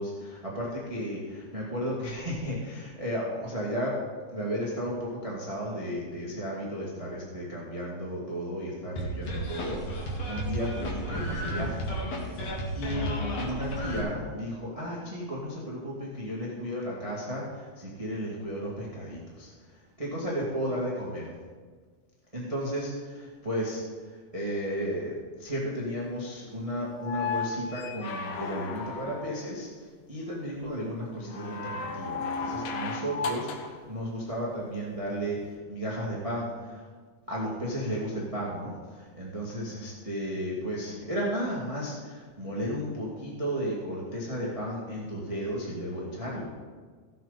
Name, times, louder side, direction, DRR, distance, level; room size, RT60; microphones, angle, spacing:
voice 1, 0.0-4.0 4.3-11.9 12.7-13.1 13.4-19.5 20.0-21.3 22.3-23.8 24.3-29.7 30.1-36.9 37.3-46.5, equal, 60° right, -4 dB, 0.3 m, -34 dB
sound 1, 9.0-14.0, equal, 50° left, 2.4 m, -32 dB
sound 2, 26.9-29.5 31.3-33.8 35.4-35.5, left 4 dB, 70° left, 2.3 m, -34 dB
17.0 x 7.6 x 4.2 m, 1.5 s
omnidirectional pair, 4.8 m